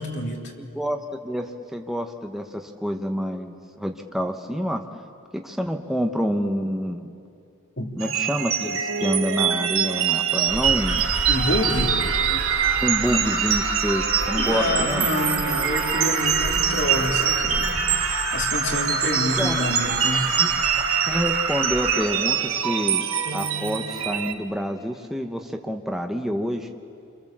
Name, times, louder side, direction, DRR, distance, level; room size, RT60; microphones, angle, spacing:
voice 1, 0.0-0.4 7.8-7.9 11.3-12.0 14.4-20.3, left 1 dB, 55° left, 0 dB, 3.0 m, -28 dB
voice 2, 0.6-4.8 5.3-7.1 8.0-11.1 12.3-12.4 12.8-15.1 19.4-19.8 20.4-20.5 21.1-23.0 23.3-26.7, equal, ahead, 4 dB, 0.9 m, -27 dB
sound 1, 8.0-24.3, right 8 dB, 85° right, 1.4 m, -25 dB
Alarm, 10.5-22.0, right 2 dB, 45° right, 5.9 m, -28 dB
sound 2, 11.3-18.1, left 1 dB, 40° left, 2.7 m, -43 dB
29.0 x 24.0 x 7.4 m, 2.5 s
head